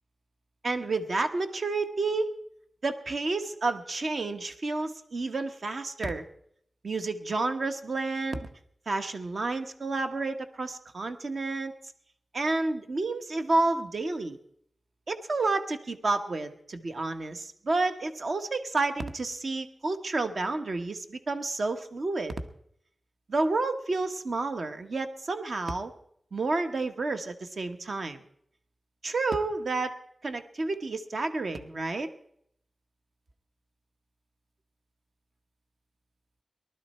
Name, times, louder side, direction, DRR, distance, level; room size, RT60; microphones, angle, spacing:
voice 1, 0.6-2.4 2.8-6.2 6.8-8.3 8.9-11.7 12.3-14.4 15.1-22.4 23.3-25.9 26.3-28.2 29.0-30.0 30.2-32.1, right 3 dB, 55° right, 7 dB, 1.2 m, -30 dB
19.0 x 12.5 x 4.3 m, 0.68 s
wide cardioid pair, 95°, 0 cm